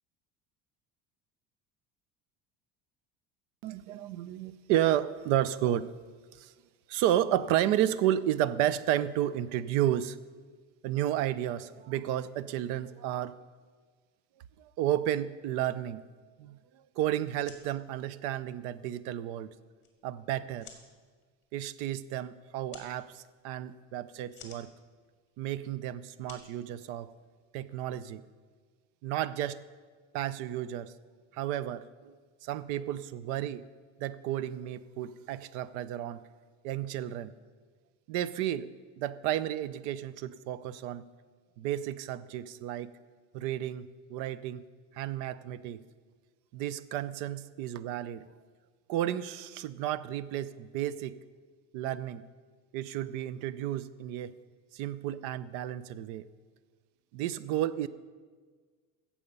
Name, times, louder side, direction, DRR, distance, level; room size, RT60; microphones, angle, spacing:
voice 1, 3.6-5.9 6.4-6.5 6.9-10.2 10.8-13.4 14.6-16.0 16.4-16.6 17.0-19.5 20.0-20.7 21.5-24.7 25.4-27.1 27.5-28.2 29.0-29.6 30.1-30.9 31.3-32.1 32.4-33.7 34.0-36.2 36.6-37.3 38.1-41.1 41.6-43.0 43.3-44.6 44.9-45.8 46.5-48.3 48.9-51.2 51.7-52.3 52.7-54.4 54.7-56.3 57.1-57.9, right 12 dB, 70° right, 17 dB, 0.6 m, -32 dB
sound 1, 17.4-27.5, left 7 dB, 35° left, 2.1 m, -57 dB
15.5 x 7.3 x 5.4 m, 1.5 s
cardioid pair, 175°, 32 cm